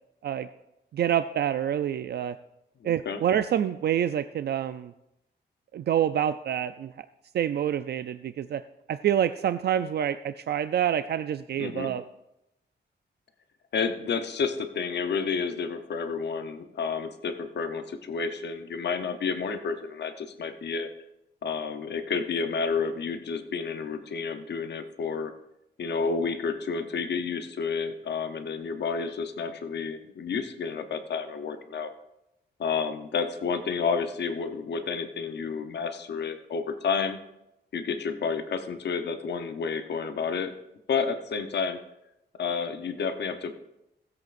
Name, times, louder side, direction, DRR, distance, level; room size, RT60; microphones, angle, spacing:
voice 1, 0.9-2.3 2.8-4.9 5.7-6.9 7.3-8.6 8.9-12.0, right 10 dB, 65° right, 11 dB, 0.4 m, -27 dB
voice 2, 2.8-3.2 11.6-11.9 13.7-20.9 21.4-25.3 25.8-31.9 32.6-37.2 37.7-40.5 40.9-41.8 42.3-43.6, left 5 dB, 70° left, 8 dB, 0.8 m, -30 dB
18.5 x 7.9 x 2.5 m, 0.87 s
wide cardioid pair, 115°, 19 cm